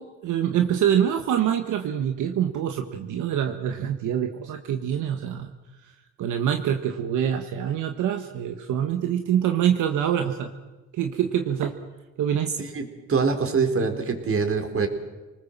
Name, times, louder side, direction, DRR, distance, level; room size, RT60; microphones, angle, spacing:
voice 1, 0.0-5.5 5.8-5.9 6.2-10.5 10.9-11.8 12.2-12.5, right 9 dB, 80° right, 6 dB, 1.6 m, -25 dB
voice 2, 12.6-14.9, right 5 dB, 45° right, 5 dB, 4.2 m, -24 dB
28.5 x 19.5 x 7.5 m, 1.1 s
cardioid pair, 90°, 30 cm